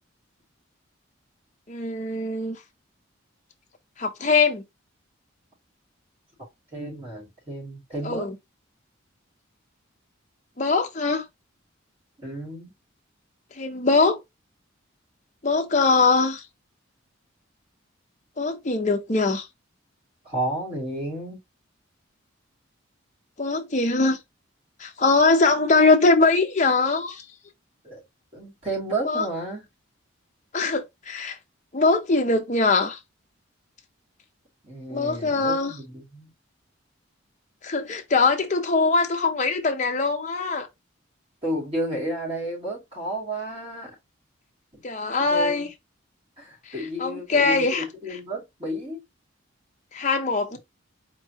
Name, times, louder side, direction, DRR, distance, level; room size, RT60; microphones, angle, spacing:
voice 1, 1.7-2.6 4.0-4.6 8.0-8.3 10.6-11.3 13.6-14.2 15.4-16.4 18.4-19.5 23.4-24.2 24.8-27.2 29.0-29.3 30.5-31.4 31.7-33.0 34.9-35.7 37.6-40.7 44.8-45.7 46.7-46.8 47.0-47.8 49.9-50.6, left 3 dB, 35° left, 0.8 m, -22 dB
voice 2, 6.7-8.3 12.2-12.7 20.2-21.4 27.8-28.0 28.3-29.7 34.6-36.3 41.4-43.9 45.3-45.7 46.4-49.0, right 1 dB, 30° right, 2.9 m, -32 dB
4.7 x 3.0 x 2.9 m
head